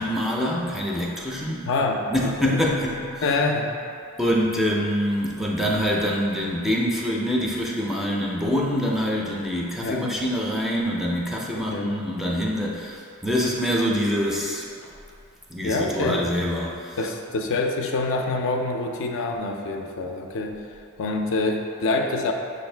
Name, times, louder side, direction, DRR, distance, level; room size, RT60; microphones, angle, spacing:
voice 1, 0.0-1.7 2.1-3.2 4.2-14.9 15.5-17.0, equal, ahead, -3 dB, 0.4 m, -25 dB
voice 2, 1.7-2.6 3.2-3.7 9.8-10.1 11.5-12.0 15.6-16.2 17.0-20.6 21.0-22.3, left 3 dB, 60° left, 3 dB, 0.4 m, -26 dB
6.3 x 2.6 x 3.2 m, 2.4 s
head